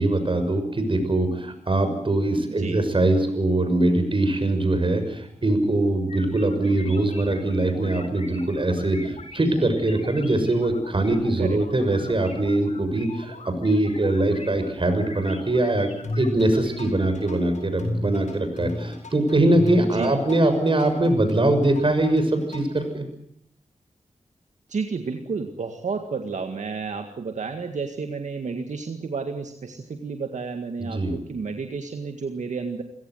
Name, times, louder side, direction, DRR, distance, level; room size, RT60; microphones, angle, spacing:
voice 1, 0.0-15.9 16.2-23.0 30.8-31.1, right 2 dB, 45° right, 8 dB, 6.5 m, -22 dB
voice 2, 2.5-2.8 11.4-11.6 19.9-20.1 24.7-32.8, right 5 dB, 80° right, 5 dB, 1.9 m, -31 dB
sound 1, 6.1-17.1, left 2 dB, 60° left, 7.8 m, -43 dB
sound 2, 16.0-22.8, left 1 dB, 75° left, 7.7 m, -32 dB
28.0 x 16.5 x 8.0 m, 0.69 s
cardioid pair, 55°, 12 cm